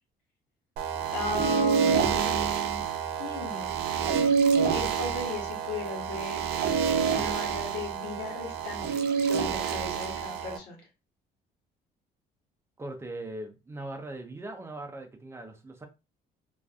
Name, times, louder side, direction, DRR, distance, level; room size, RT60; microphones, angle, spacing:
sound 1, 0.8-10.6, right 6 dB, 75° right, 0.5 m, -27 dB
voice 1, 1.1-2.8 3.2-3.8 4.6-6.4 7.1-10.8, left 3 dB, 85° left, 1.0 m, -36 dB
voice 2, 12.8-15.9, right 2 dB, 15° right, 0.5 m, -40 dB
2.4 x 2.4 x 2.4 m
cardioid pair, 110°, 17 cm